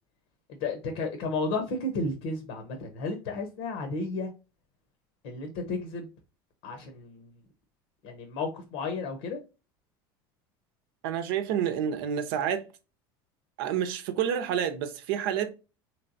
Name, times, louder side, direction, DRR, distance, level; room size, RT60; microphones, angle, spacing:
voice 1, 0.6-4.3 5.2-6.1 6.6-7.3 8.0-9.4, left 3 dB, 70° left, 0.8 m, -33 dB
voice 2, 11.0-12.6 13.6-15.5, right 9 dB, 75° right, 0.7 m, -29 dB
3.3 x 3.1 x 2.6 m
supercardioid pair, 100°, 12 cm